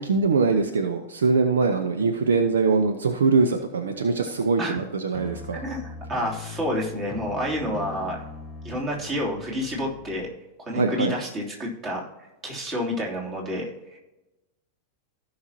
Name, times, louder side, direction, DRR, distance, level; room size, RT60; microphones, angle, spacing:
voice 1, 0.0-5.6 10.7-11.1, right 4 dB, 65° right, 7 dB, 0.7 m, -22 dB
sound 1, 5.1-10.3, left 4 dB, 10° left, 1.6 m, -40 dB
voice 2, 5.5-8.2 8.6-10.3 10.6-12.1 12.4-14.0, equal, 25° right, -2 dB, 2.9 m, -29 dB
16.0 x 5.8 x 2.9 m, 1.0 s
figure-of-eight pair, 90°, 0 cm